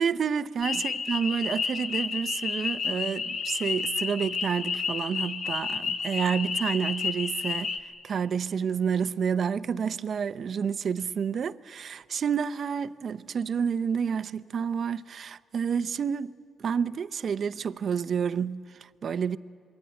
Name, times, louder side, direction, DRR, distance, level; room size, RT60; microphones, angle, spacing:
voice 1, 0.0-7.7 8.0-19.4, right 7 dB, 50° right, 0.7 m, -29 dB
sound 1, 0.6-7.8, left 5 dB, 60° left, 1.8 m, -31 dB
27.0 x 22.5 x 9.0 m
cardioid pair, 90°, 0 cm